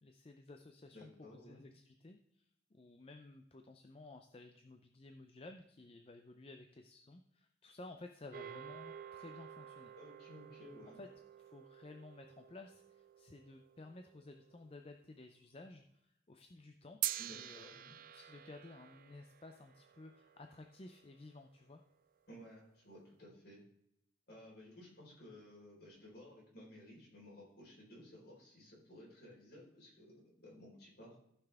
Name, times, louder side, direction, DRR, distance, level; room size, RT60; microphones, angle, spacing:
voice 1, 0.0-9.9 10.9-11.1 11.4-17.0 17.3-21.8, left 2 dB, 30° left, 5 dB, 0.5 m, -55 dB
voice 2, 0.9-1.6 10.0-11.0 17.2-18.0 22.3-23.6 24.3-31.2, left 1 dB, 55° left, -4 dB, 4.4 m, -56 dB
sound 1, 8.3-14.8 17.0-21.5, right 13 dB, 45° right, 0.4 m, -48 dB
15.0 x 5.7 x 3.5 m, 0.78 s
head